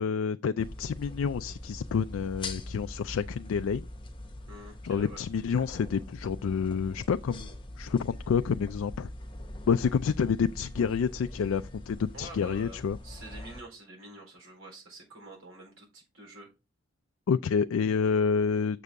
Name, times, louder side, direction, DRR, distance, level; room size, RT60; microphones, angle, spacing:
voice 1, 0.0-3.9 4.8-7.5 7.8-9.1 9.7-13.0 17.3-18.8, left 6 dB, 90° left, 0.4 m, -28 dB
sound 1, 0.6-13.6, left 1 dB, 25° left, 1.0 m, -42 dB
voice 2, 4.5-5.2 12.1-12.8 13.0-16.5, right 1 dB, 85° right, 4.0 m, -47 dB
6.7 x 6.7 x 3.6 m
head